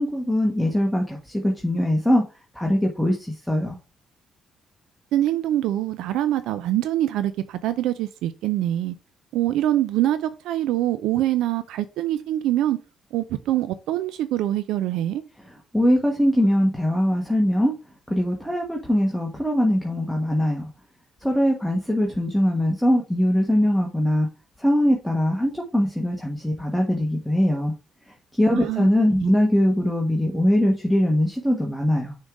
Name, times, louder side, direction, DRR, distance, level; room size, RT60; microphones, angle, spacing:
voice 1, 0.0-2.2 2.5-3.8 15.4-17.7 18.1-20.6 21.2-24.3 24.6-27.7 28.3-32.2, equal, ahead, 1.2 m, -21 dB
voice 2, 5.1-8.9 9.3-12.8 13.1-15.2 28.7-28.9 29.2-29.3, right 13 dB, 90° right, 0.4 m, -24 dB
6.3 x 3.8 x 4.7 m
cardioid pair, 90°, 0 cm